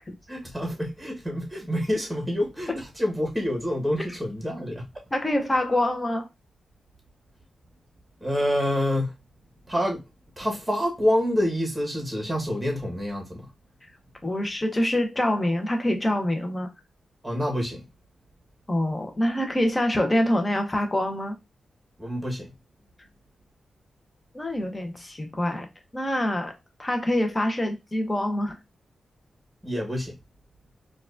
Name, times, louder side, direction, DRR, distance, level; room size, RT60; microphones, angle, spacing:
voice 1, 0.3-5.0 8.2-9.1 9.7-10.0 10.4-13.4 17.2-17.8 22.0-22.5 29.6-30.2, equal, 5° right, 1.2 m, -27 dB
voice 2, 5.1-6.3 14.2-16.7 18.7-21.4 24.3-25.7 25.9-26.5 26.8-28.5, left 1 dB, 20° left, 0.8 m, -25 dB
4.6 x 2.4 x 2.5 m
cardioid pair, 85°, 0 cm